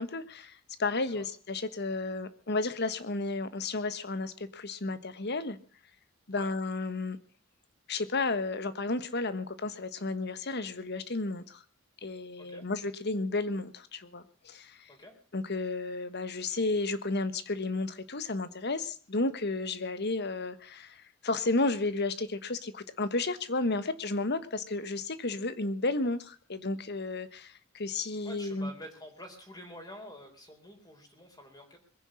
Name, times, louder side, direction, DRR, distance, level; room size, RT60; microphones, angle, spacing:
voice 1, 0.0-5.6 6.3-7.2 7.9-11.6 12.0-14.9 15.3-28.7, left 3 dB, 55° left, 13 dB, 1.4 m, -32 dB
voice 2, 28.2-31.8, left 1 dB, 20° left, 3 dB, 4.1 m, -48 dB
21.5 x 10.0 x 6.3 m, 0.43 s
head